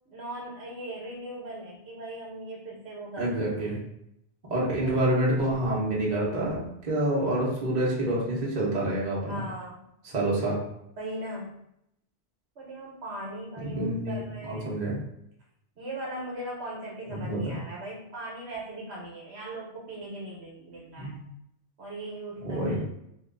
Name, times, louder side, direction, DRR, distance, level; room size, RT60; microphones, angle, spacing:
voice 1, 0.1-3.3 3.6-3.7 4.8-4.9 9.3-9.8 11.0-11.6 12.6-14.8 15.8-21.2 21.8-22.8, right 1 dB, 70° right, -4 dB, 1.2 m, -39 dB
voice 2, 3.2-3.8 4.5-9.4 10.0-10.6 13.6-15.0 17.1-17.5 21.0-21.2 22.4-22.8, right 1 dB, 40° right, -5 dB, 0.9 m, -27 dB
3.0 x 2.3 x 3.7 m, 0.77 s
omnidirectional pair, 1.2 m